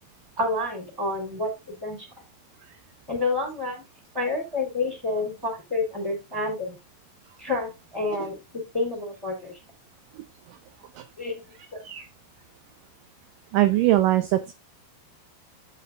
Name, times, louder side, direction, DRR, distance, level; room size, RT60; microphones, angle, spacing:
voice 1, 0.4-2.0 3.1-3.8 4.1-6.8 7.4-9.5 11.2-11.4 11.7-11.8, left 2 dB, 5° right, 2 dB, 4.1 m, -29 dB
voice 2, 13.5-14.5, right 14 dB, 75° right, 9 dB, 2.0 m, -22 dB
9.6 x 6.6 x 3.7 m, 0.23 s
omnidirectional pair, 4.6 m